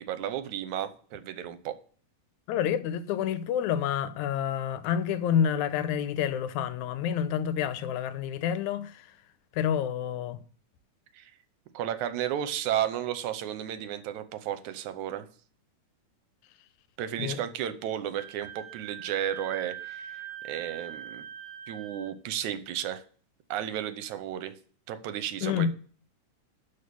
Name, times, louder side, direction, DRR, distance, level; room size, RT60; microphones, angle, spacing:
voice 1, 0.0-1.8 11.1-11.3 11.7-15.3 17.0-21.3 21.7-23.0 23.5-24.5 24.9-25.7, right 10 dB, 80° right, 2.3 m, -33 dB
voice 2, 2.5-9.1 9.5-10.4 17.2-17.4 25.4-25.7, left 9 dB, 85° left, 2.1 m, -28 dB
Wind instrument woodwind instrument, 18.2-22.1, right 10 dB, 35° right, 2.0 m, -42 dB
12.0 x 4.6 x 6.9 m
omnidirectional pair, 3.4 m